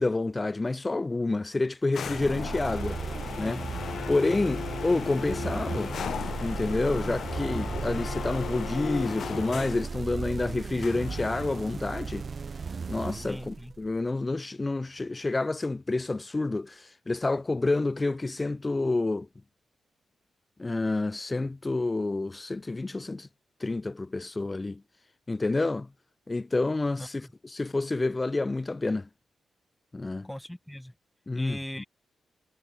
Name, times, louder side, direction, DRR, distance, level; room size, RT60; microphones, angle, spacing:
voice 1, 0.0-3.0 3.4-3.6 4.1-6.0 6.4-12.3 12.9-19.3 20.6-23.3 23.6-24.8 25.3-25.9 26.3-29.1 29.9-30.3 31.3-31.6, left 2 dB, 25° left, 0.6 m, -29 dB
sound 1, 1.9-10.0 10.8-11.7, left 8 dB, 70° left, 0.3 m, -37 dB
sound 2, 2.0-14.0, right 5 dB, 45° right, 0.6 m, -36 dB
voice 2, 4.3-4.6 13.3-13.7 27.0-27.3 30.2-30.9 31.3-31.9, left 1 dB, 5° left, 0.9 m, -40 dB
cardioid pair, 85°, 0 cm